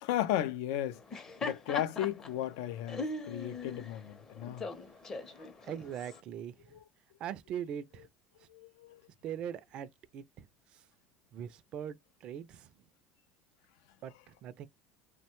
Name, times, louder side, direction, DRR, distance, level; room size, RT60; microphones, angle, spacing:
voice 1, 0.0-1.0 1.4-4.7 6.7-6.8 8.5-9.0, left 12 dB, 80° left, 0.3 m, -35 dB
Laughter, 0.9-6.2, left 3 dB, 25° left, 0.6 m, -41 dB
voice 2, 5.1-6.8 7.2-8.1 8.4-8.5 9.2-10.5 10.7-10.8 11.3-12.7 14.0-14.7, right 9 dB, 50° right, 0.3 m, -42 dB
3.1 x 2.1 x 2.9 m
supercardioid pair, 125°, 2 cm